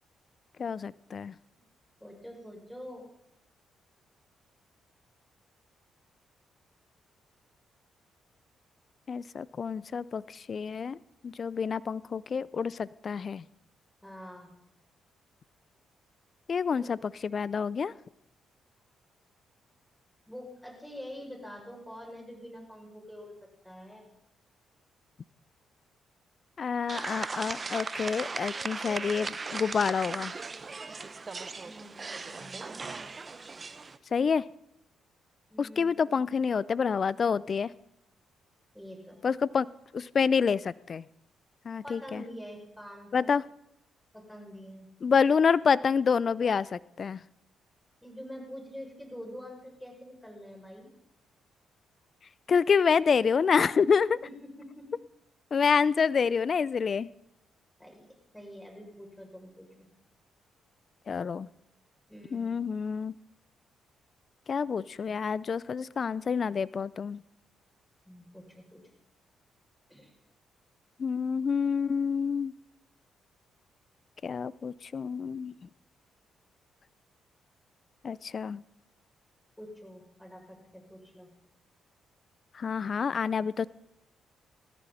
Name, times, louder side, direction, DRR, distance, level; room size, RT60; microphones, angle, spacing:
voice 1, 0.6-1.3 9.1-11.0 11.2-13.4 16.5-17.9 26.6-30.3 34.1-34.5 35.6-37.7 39.2-39.7 39.9-41.0 41.6-42.2 43.1-43.4 45.0-47.2 52.5-54.2 55.5-57.1 61.1-61.5 62.3-63.1 64.5-67.2 71.0-72.5 74.2-75.5 78.0-78.6 82.5-83.7, left 6 dB, 50° left, 21 dB, 0.5 m, -28 dB
voice 2, 2.0-3.1 14.0-14.5 16.8-16.9 20.3-23.4 23.6-24.1 31.6-32.9 35.5-36.2 38.7-39.2 41.8-43.3 44.1-44.9 48.0-50.9 54.2-54.3 54.6-54.9 57.8-58.1 58.3-59.7 62.1-62.6 68.1-68.8 69.9-70.1 79.6-81.3, equal, 5° left, 1 dB, 6.7 m, -46 dB
sound 1, 26.9-34.0, right 4 dB, 40° right, 0.9 m, -37 dB
18.0 x 14.0 x 4.2 m, 0.78 s
supercardioid pair, 55°, 0 cm